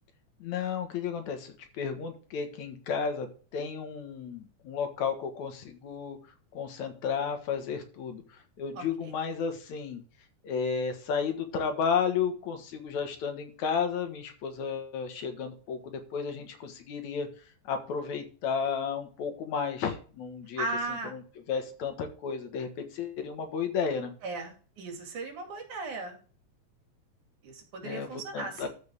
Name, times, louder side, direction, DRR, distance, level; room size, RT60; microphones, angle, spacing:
voice 1, 0.4-3.3 3.5-6.2 6.5-10.0 10.4-17.3 17.7-20.6 21.1-21.2 21.5-24.1 27.8-28.7, left 6 dB, 75° left, 6 dB, 2.7 m, -33 dB
voice 2, 8.8-9.1 20.6-21.1 24.2-26.2 27.4-28.7, right 2 dB, 80° right, 3 dB, 3.8 m, -37 dB
13.5 x 5.7 x 3.5 m, 0.39 s
omnidirectional pair, 3.5 m